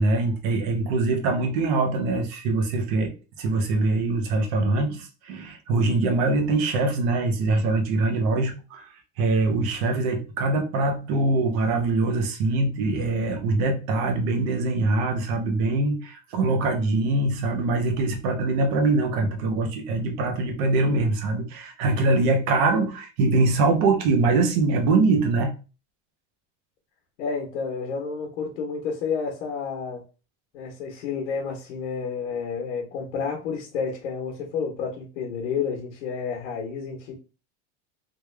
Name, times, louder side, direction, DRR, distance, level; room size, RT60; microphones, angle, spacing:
voice 1, 0.0-3.1 3.4-8.8 9.2-25.5, right 3 dB, 35° right, 0.6 m, -23 dB
voice 2, 27.2-30.0 30.5-37.1, left 5 dB, 85° left, 1.1 m, -30 dB
3.4 x 2.2 x 3.2 m
supercardioid pair, 180°, 35 cm